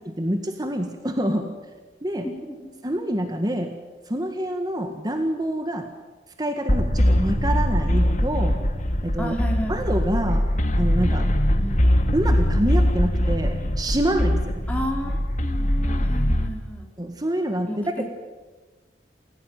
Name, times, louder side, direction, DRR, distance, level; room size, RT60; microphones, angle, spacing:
voice 1, 0.0-1.5 2.0-2.3 2.8-3.7 4.1-5.9 6.4-8.6 9.0-9.3 9.7-10.5 10.8-11.3 12.1-14.6 17.0-17.9, right 1 dB, 25° right, 5 dB, 1.8 m, -26 dB
voice 2, 2.2-2.7 9.2-9.8 11.6-11.9 14.7-16.9 17.7-18.0, equal, 10° left, 0 dB, 3.5 m, -32 dB
sound 1, 6.7-16.5, equal, 45° left, 2.1 m, -22 dB
28.0 x 16.5 x 9.3 m, 1.3 s
head